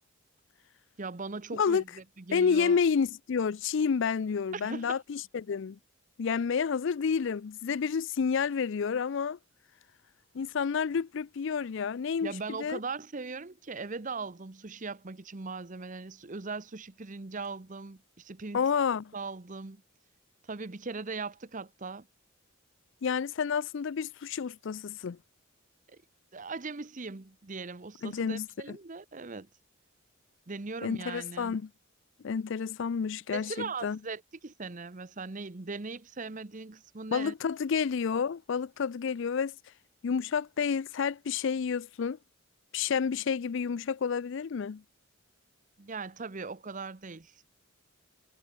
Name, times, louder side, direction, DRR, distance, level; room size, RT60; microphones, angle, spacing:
voice 1, 1.0-2.8 4.5-5.0 12.2-18.6 19.1-19.8 20.5-22.1 25.9-26.0 26.3-29.5 30.5-31.6 33.3-37.3 45.8-47.3, right 4 dB, 40° right, 0.9 m, -39 dB
voice 2, 1.5-1.8 2.3-5.8 6.2-9.4 10.3-12.8 18.5-19.1 23.0-25.2 28.0-28.5 30.8-31.7 32.2-34.0 37.1-39.5 40.0-42.2 42.7-44.8, left 6 dB, 60° left, 0.4 m, -30 dB
head